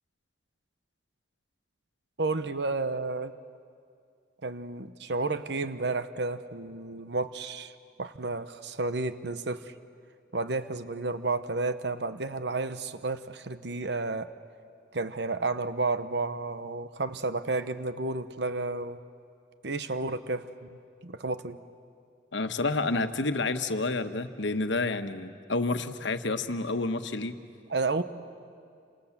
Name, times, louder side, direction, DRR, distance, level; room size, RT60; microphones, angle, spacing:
voice 1, 2.2-3.3 4.4-9.7 10.3-14.3 14.9-19.0 19.6-21.6 27.7-28.0, right 3 dB, 65° right, 11 dB, 1.0 m, -31 dB
voice 2, 22.3-27.4, left 3 dB, 90° left, 8 dB, 1.2 m, -29 dB
28.5 x 27.0 x 7.3 m, 2.3 s
head